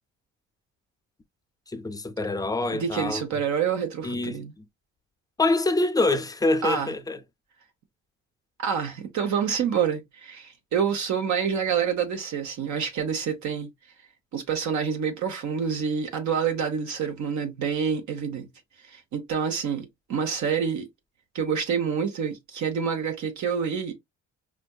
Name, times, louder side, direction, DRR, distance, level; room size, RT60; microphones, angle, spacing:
voice 1, 1.7-3.2 4.0-4.4 5.4-7.2, left 2 dB, 10° left, 0.4 m, -25 dB
voice 2, 2.7-4.5 6.6-6.9 8.6-13.7 14.3-18.5 18.9-20.9 21.3-23.9, right 7 dB, 70° right, 0.9 m, -27 dB
4.5 x 2.5 x 2.2 m
cardioid pair, 90°, 30 cm